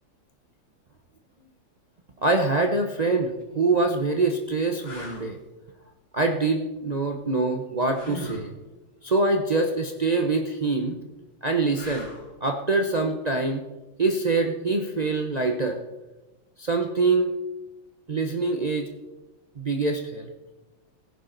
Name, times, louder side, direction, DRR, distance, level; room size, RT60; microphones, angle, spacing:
voice 1, 2.2-5.4 6.1-8.5 9.0-11.0 11.4-12.1 12.4-13.6 14.0-15.8 16.6-17.3 18.1-18.9 19.6-20.3, right 3 dB, 75° right, 3 dB, 0.3 m, -24 dB
sound 1, 3.3-3.4 4.1-4.2 4.8-5.3 7.9-8.5 11.7-12.3 15.3-15.5, left 2 dB, 50° left, 4.5 m, -38 dB
16.5 x 10.5 x 3.9 m, 1.1 s
omnidirectional pair, 2.1 m